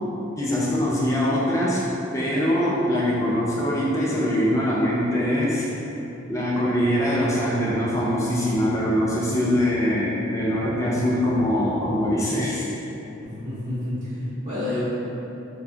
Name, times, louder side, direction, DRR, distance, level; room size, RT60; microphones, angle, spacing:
voice 1, 0.4-1.9 2.1-5.7 6.3-12.7, equal, 15° left, -6 dB, 0.3 m, -23 dB
voice 2, 13.2-14.9, left 1 dB, 40° right, -14 dB, 1.1 m, -29 dB
4.2 x 2.2 x 2.7 m, 2.9 s
head